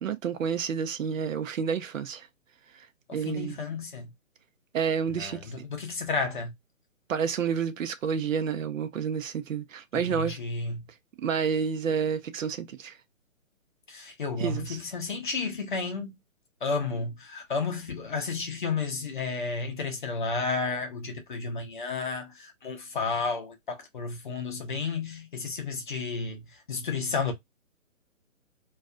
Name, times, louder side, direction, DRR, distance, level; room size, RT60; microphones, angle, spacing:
voice 1, 0.0-2.3 2.7-2.9 3.1-3.6 4.7-5.5 7.1-10.4 11.2-13.0 14.4-14.8, right 6 dB, 70° right, 0.5 m, -29 dB
voice 2, 3.2-4.1 5.2-6.5 10.1-10.8 13.9-16.1 16.6-27.3, left 4 dB, 40° left, 0.5 m, -32 dB
2.3 x 2.3 x 2.4 m
hypercardioid pair, 155°, 40 cm